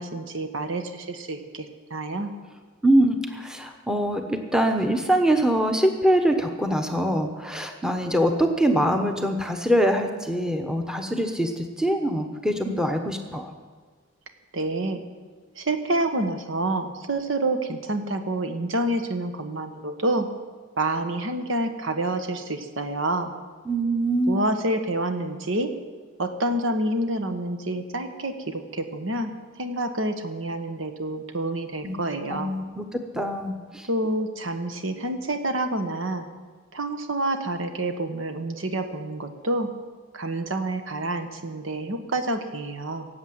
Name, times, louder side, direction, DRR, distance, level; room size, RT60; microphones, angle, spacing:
voice 1, 0.0-2.3 14.5-15.0 15.5-20.3 20.8-23.3 24.3-25.7 26.2-29.3 29.6-32.5 33.8-36.3 36.7-39.7 40.1-43.1, right 1 dB, 70° right, 7 dB, 1.3 m, -28 dB
voice 2, 2.8-13.5 23.7-24.4 31.8-32.0 32.3-33.9, right 1 dB, 5° right, 5 dB, 1.0 m, -23 dB
17.5 x 7.9 x 7.9 m, 1.5 s
head